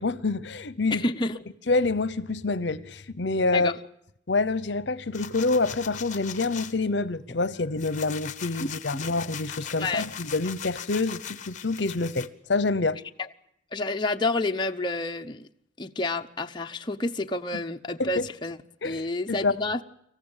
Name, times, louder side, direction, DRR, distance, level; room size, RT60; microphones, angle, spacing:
voice 1, 0.0-1.0 1.7-3.7 4.3-13.0 18.0-18.1 18.8-19.0 19.3-19.5, left 3 dB, 65° left, 0.9 m, -27 dB
voice 2, 0.9-1.4 3.5-3.8 8.6-9.0 9.8-10.0 13.7-15.5 15.8-18.6 18.8-19.8, left 2 dB, 25° left, 0.8 m, -29 dB
sound 1, 5.1-6.7 7.3-12.3, left 8 dB, 40° left, 1.1 m, -39 dB
25.5 x 15.0 x 9.0 m
head